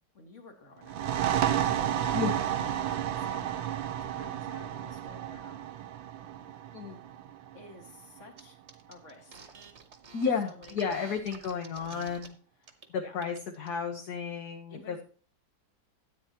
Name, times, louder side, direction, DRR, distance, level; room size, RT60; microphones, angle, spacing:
voice 1, 0.1-1.0 1.5-3.3 4.0-5.7 7.5-8.6 8.9-9.5 10.2-11.5 13.0-13.1 14.7-15.0, left 3 dB, 40° left, 3 dB, 2.2 m, -52 dB
sound 1, 0.8-8.2, right 10 dB, 80° right, 1.5 m, -32 dB
sound 2, 8.4-8.5 8.7-12.3 12.6-12.9 13.2-13.7, right 5 dB, 40° right, 1.3 m, -49 dB
voice 2, 10.1-12.3 12.9-15.0, left 6 dB, 55° left, 2 dB, 1.6 m, -32 dB
13.5 x 9.1 x 2.9 m, 0.40 s
omnidirectional pair, 2.1 m